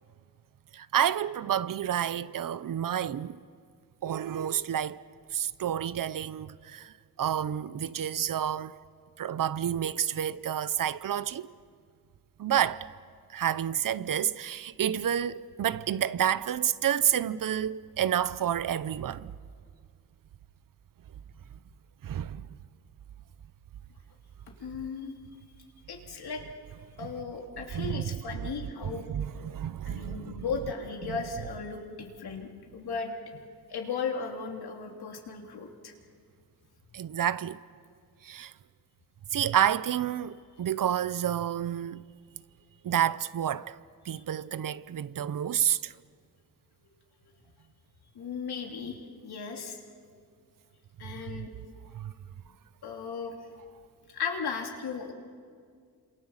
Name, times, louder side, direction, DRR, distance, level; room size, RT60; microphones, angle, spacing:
voice 1, 0.7-3.4 4.0-5.0 5.3-8.8 9.2-11.5 12.4-12.9 13.3-19.3 22.0-22.4 27.7-28.2 29.1-30.4 31.0-31.1 36.9-37.6 38.2-38.5 39.3-42.0 42.8-43.8 44.1-45.9 51.3-51.5 51.9-52.1, right 10 dB, 60° right, 0.7 m, -29 dB
voice 2, 24.6-25.2 25.9-26.4 27.0-29.1 29.8-33.1 33.7-35.9 44.1-44.2 48.1-49.8 51.0-51.5 52.8-53.4 54.1-55.1, left 5 dB, 80° left, 3.3 m, -36 dB
28.5 x 27.0 x 7.3 m
wide cardioid pair, 140°, 38 cm